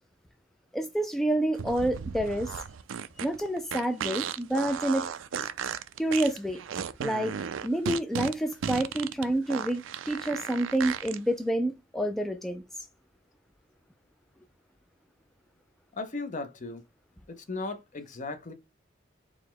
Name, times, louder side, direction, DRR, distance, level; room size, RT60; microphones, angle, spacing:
voice 1, 0.7-2.5 3.2-5.1 6.0-6.6 7.0-12.6, right 1 dB, ahead, 0.3 m, -28 dB
sound 1, 1.5-11.2, right 7 dB, 70° right, 0.4 m, -35 dB
voice 2, 15.9-16.8 17.3-18.5, left 3 dB, 40° left, 0.6 m, -36 dB
4.7 x 2.1 x 3.8 m
head